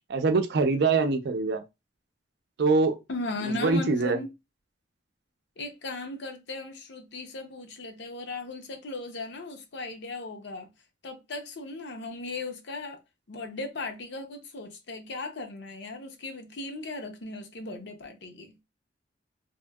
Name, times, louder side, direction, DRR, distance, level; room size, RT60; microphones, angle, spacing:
voice 1, 0.1-1.6 2.6-3.0 3.6-4.2, right 3 dB, 65° right, 0.5 m, -23 dB
voice 2, 3.1-4.3 5.6-10.7 11.0-13.0 13.3-18.5, left 2 dB, 65° left, 0.6 m, -37 dB
2.9 x 2.7 x 2.2 m
head